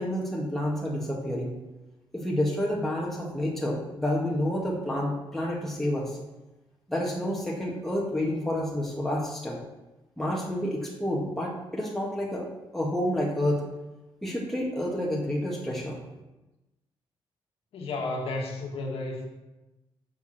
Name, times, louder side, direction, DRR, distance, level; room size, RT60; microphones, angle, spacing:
voice 1, 0.0-1.6 2.1-6.2 6.9-9.6 10.2-13.6 14.2-16.0, left 1 dB, 5° left, -4 dB, 1.8 m, -29 dB
voice 2, 17.7-19.2, left 2 dB, 80° left, 1 dB, 1.8 m, -32 dB
6.9 x 6.4 x 6.4 m, 1.0 s
cardioid pair, 90°, 10 cm